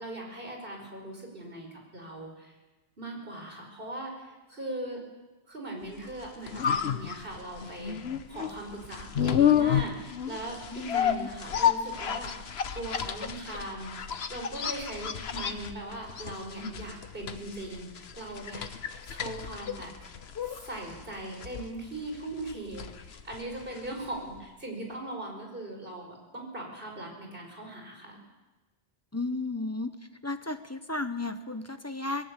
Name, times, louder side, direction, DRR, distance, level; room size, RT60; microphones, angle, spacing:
voice 1, 0.0-2.5 3.0-5.0 5.5-8.0 8.3-20.1 20.5-28.2, right 1 dB, 55° right, 1 dB, 5.2 m, -40 dB
sound 1, 6.1-24.1 24.4-24.5, left 9 dB, 70° left, 1.2 m, -31 dB
voice 2, 10.7-11.3 29.1-29.9 30.2-32.3, left 2 dB, 15° left, 9 dB, 1.1 m, -34 dB
20.0 x 18.0 x 8.3 m, 1.2 s
omnidirectional pair, 1.1 m